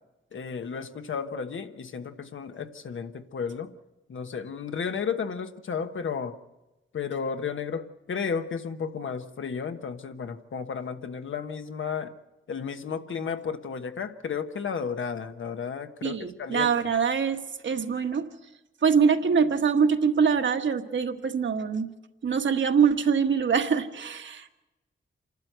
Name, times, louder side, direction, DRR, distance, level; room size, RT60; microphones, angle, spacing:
voice 1, 0.3-3.7 4.1-6.4 6.9-12.1 12.5-16.7, left 6 dB, 75° left, 8 dB, 1.2 m, -33 dB
voice 2, 16.0-18.3 18.8-21.9 22.2-24.5, right 6 dB, 70° right, 6 dB, 1.3 m, -24 dB
27.5 x 12.0 x 8.0 m, 1.1 s
wide cardioid pair, 145°, 20 cm